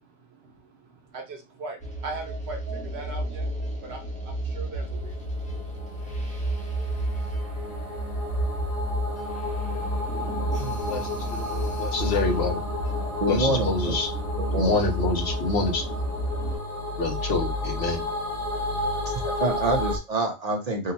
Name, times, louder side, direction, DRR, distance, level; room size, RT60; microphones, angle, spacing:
voice 1, 0.0-3.5 3.8-5.2, right 3 dB, 75° right, 3 dB, 1.0 m, -40 dB
sound 1, 1.8-16.6, right 1 dB, 10° left, 0.7 m, -31 dB
sound 2, 5.1-20.0, left 2 dB, 35° left, 0.9 m, -32 dB
voice 2, 10.8-12.6 13.3-14.1 14.5-15.8 17.0-18.0, left 3 dB, 70° left, 4 dB, 0.9 m, -27 dB
voice 3, 13.2-13.9 14.4-14.8 19.3-20.9, right 1 dB, 45° right, 2 dB, 0.7 m, -26 dB
3.7 x 2.1 x 2.7 m, 0.27 s
omnidirectional pair, 1.1 m